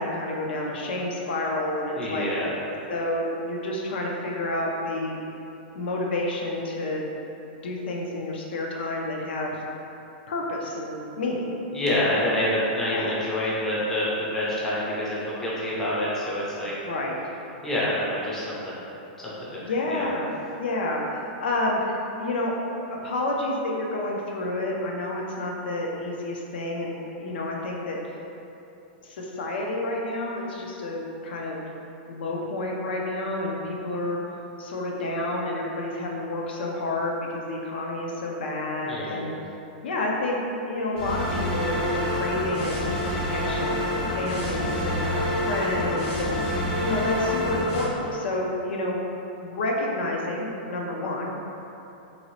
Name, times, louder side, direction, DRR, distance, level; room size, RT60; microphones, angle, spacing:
voice 1, 0.0-2.3 2.9-5.2 5.7-7.1 7.6-9.6 10.3-11.5 12.9-13.1 16.6-17.1 19.6-21.0 21.4-22.5 22.9-28.0 29.0-31.6 32.1-34.2 34.6-39.3 39.8-40.4 40.6-45.2 45.5-46.4 46.8-49.0 49.4-51.3, left 2 dB, 75° left, -1 dB, 0.5 m, -29 dB
voice 2, 1.9-2.6 11.7-16.7 17.6-18.8 19.2-19.6 19.9-20.0 38.8-39.4, left 1 dB, 5° left, -8 dB, 0.4 m, -27 dB
sound 1, 41.0-47.8, left 1 dB, 55° left, 1.4 m, -27 dB
2.8 x 2.6 x 3.0 m, 2.9 s
supercardioid pair, 165°, 6 cm